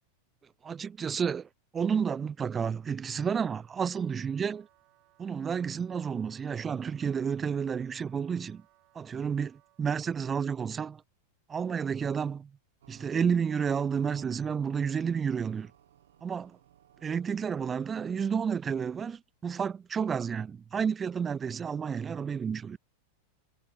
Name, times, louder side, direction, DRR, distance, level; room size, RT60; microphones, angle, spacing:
voice 1, 0.6-4.7 5.2-8.6 8.9-11.0 11.5-12.5 12.9-15.7 16.2-16.5 17.0-22.8, right 7 dB, 20° right, 0.6 m, -31 dB
Wind instrument woodwind instrument, 3.4-9.9, right 22 dB, 40° right, 3.8 m, -67 dB
sound 1, 12.8-18.7, right 11 dB, 60° right, 5.3 m, -60 dB
figure-of-eight pair, 90°, 0 cm